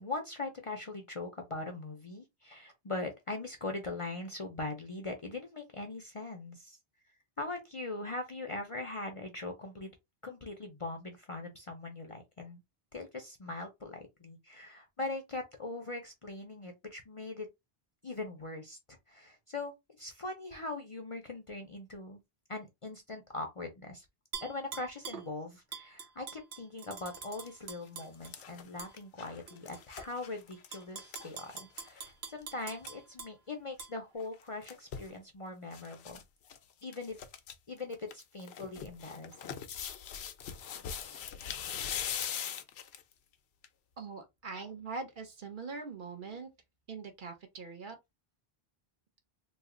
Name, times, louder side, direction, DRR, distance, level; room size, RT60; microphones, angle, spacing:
voice 1, 0.0-6.8 7.4-9.9 10.2-12.6 12.9-17.5 18.0-19.7 20.0-22.2 22.5-24.1 24.4-36.2 36.8-37.2 37.7-39.6 41.0-41.2, left 2 dB, 40° left, 0.5 m, -41 dB
Tap / Glass, 24.3-25.3 25.7-28.3 28.8-28.9 29.5-30.0 30.5-33.3 33.8-33.9, right 6 dB, 90° right, 1.1 m, -44 dB
sound 1, 27.2-27.5 27.9-32.1 32.4-32.5 32.7-32.9 34.2-35.1 35.7-36.2 36.5-36.6 36.9-37.5 37.9-43.1 43.6-43.7, left 8 dB, 85° left, 0.8 m, -41 dB
voice 2, 44.0-46.5 46.9-47.9, right 4 dB, 55° right, 0.9 m, -42 dB
3.1 x 2.0 x 3.7 m
omnidirectional pair, 1.0 m